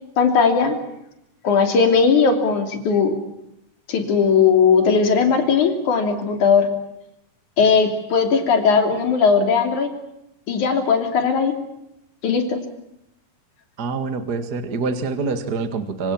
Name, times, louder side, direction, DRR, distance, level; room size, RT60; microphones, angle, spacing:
voice 1, 0.2-0.8 1.4-3.2 3.9-6.7 7.6-9.9 10.5-11.5 12.2-12.6, left 5 dB, 60° left, 5 dB, 4.4 m, -18 dB
voice 2, 13.8-16.1, right 4 dB, 40° right, 9 dB, 1.7 m, -25 dB
26.0 x 25.0 x 7.2 m, 0.81 s
omnidirectional pair, 3.9 m